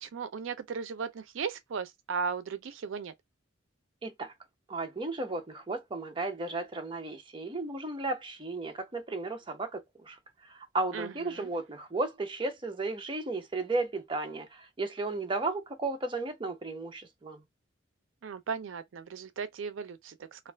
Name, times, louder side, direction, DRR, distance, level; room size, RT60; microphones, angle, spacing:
voice 1, 0.0-3.1 10.9-11.5 18.2-20.5, right 5 dB, 80° right, 0.4 m, -36 dB
voice 2, 4.0-4.3 4.7-10.2 10.4-17.4, right 2 dB, 25° right, 0.5 m, -34 dB
2.4 x 2.3 x 3.2 m
head